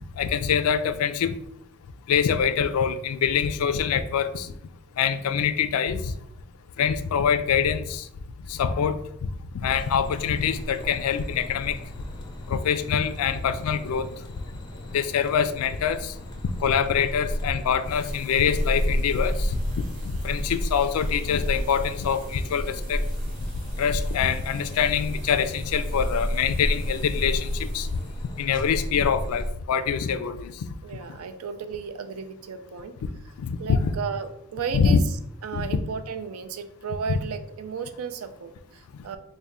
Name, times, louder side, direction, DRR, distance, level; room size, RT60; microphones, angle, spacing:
voice 1, 0.2-1.3 2.1-4.5 5.0-6.1 6.8-8.0 8.5-9.3 9.6-11.8 12.5-14.1 14.9-16.1 16.6-19.6 20.2-23.1 23.8-27.9 28.4-30.5 33.4-33.9 34.7-35.0 35.5-35.8, left 7 dB, 85° left, 13 dB, 0.3 m, -24 dB
sound 1, 9.7-29.5, equal, 20° left, 0.4 m, -32 dB
sound 2, 17.8-28.4, right 3 dB, 35° right, 0.7 m, -51 dB
voice 2, 30.8-33.0 33.6-35.0 35.4-39.2, right 6 dB, 80° right, 9 dB, 0.4 m, -34 dB
4.0 x 2.1 x 3.5 m, 0.75 s
head